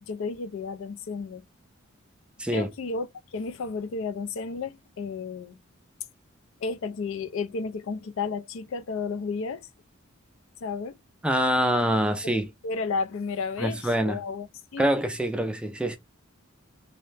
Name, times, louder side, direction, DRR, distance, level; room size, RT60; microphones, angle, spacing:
voice 1, 0.0-1.4 2.5-3.1 3.3-5.6 6.6-9.7 10.6-11.0 12.2-14.9, left 4 dB, 70° left, 0.4 m, -32 dB
voice 2, 11.2-12.5 13.6-14.2 14.8-16.0, equal, 5° right, 0.3 m, -25 dB
2.7 x 2.1 x 3.2 m
head